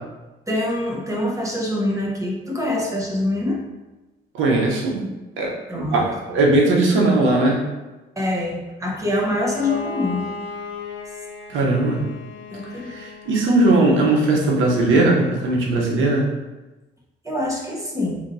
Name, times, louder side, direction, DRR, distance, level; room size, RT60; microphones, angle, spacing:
voice 1, 0.5-3.6 5.7-6.0 8.2-10.3 12.5-12.9 17.2-18.2, left 1 dB, 15° right, -2 dB, 0.9 m, -24 dB
voice 2, 4.3-5.0 5.4-7.6 11.5-12.0 12.9-16.3, right 2 dB, 80° right, -1 dB, 0.9 m, -19 dB
Bowed string instrument, 9.2-13.9, left 4 dB, 70° left, 0.5 m, -36 dB
4.4 x 2.7 x 2.7 m, 1.1 s
cardioid pair, 90°, 20 cm